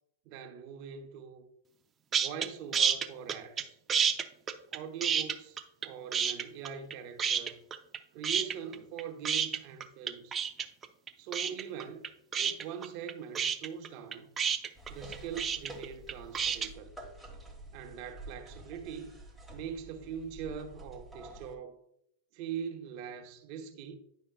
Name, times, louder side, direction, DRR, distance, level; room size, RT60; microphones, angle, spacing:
voice 1, 0.3-1.5 2.1-3.8 4.7-7.6 8.1-10.4 11.2-12.1 12.4-14.3 14.9-16.9 17.7-19.2 19.5-21.8 22.3-24.0, right 7 dB, 50° right, 1.0 m, -42 dB
sound 1, 2.1-2.5 2.7-3.6 3.9-5.9 6.1-6.9 7.2-8.0 8.2-16.7, right 7 dB, 20° right, 0.6 m, -29 dB
sound 2, 14.7-21.5, right 1 dB, ahead, 1.4 m, -49 dB
10.0 x 5.4 x 2.3 m
hypercardioid pair, 125°, 0 cm